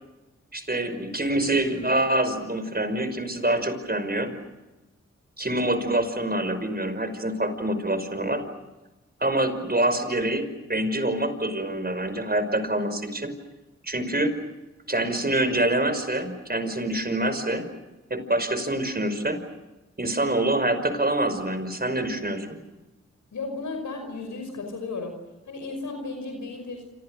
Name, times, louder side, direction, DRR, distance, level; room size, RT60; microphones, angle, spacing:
voice 1, 0.5-4.3 5.4-8.4 9.2-13.3 13.8-14.3 14.9-17.7 18.1-19.4 20.0-22.5, right 1 dB, 30° right, 10 dB, 5.6 m, -26 dB
voice 2, 23.3-25.2 25.4-26.9, left 3 dB, 85° left, 4 dB, 5.6 m, -34 dB
27.5 x 27.5 x 6.5 m, 1.1 s
cardioid pair, 45°, 29 cm